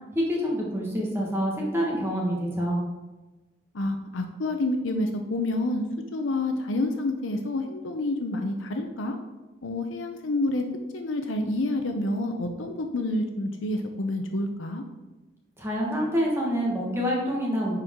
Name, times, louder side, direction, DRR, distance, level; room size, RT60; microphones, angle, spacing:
voice 1, 0.1-2.8 15.6-17.8, equal, 15° right, -3 dB, 1.4 m, -26 dB
voice 2, 3.7-5.8 6.1-9.2 9.6-10.6 10.9-14.8, left 2 dB, 80° left, 5 dB, 0.7 m, -28 dB
10.5 x 4.6 x 3.7 m, 1.1 s
head